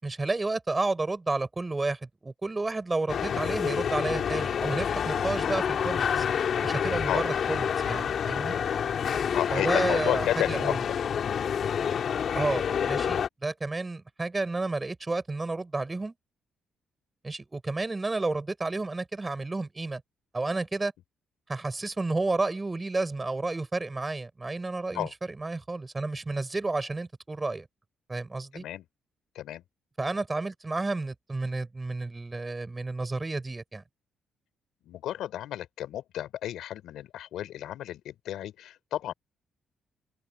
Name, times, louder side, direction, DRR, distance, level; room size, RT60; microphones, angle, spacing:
voice 1, 0.0-6.3 6.6-8.5 9.5-10.8 12.3-16.1 17.2-20.0 20.3-20.9 21.5-25.1 25.4-27.7 28.1-28.6 30.0-33.8, right 3 dB, 20° right, 6.5 m, -31 dB
sound 1, 3.1-13.3, left 7 dB, 55° left, 2.7 m, -28 dB
voice 2, 9.3-11.0 24.9-25.1 28.5-28.9 29.3-29.6 34.8-39.1, left 12 dB, 80° left, 3.9 m, -32 dB
cardioid pair, 90°, 0 cm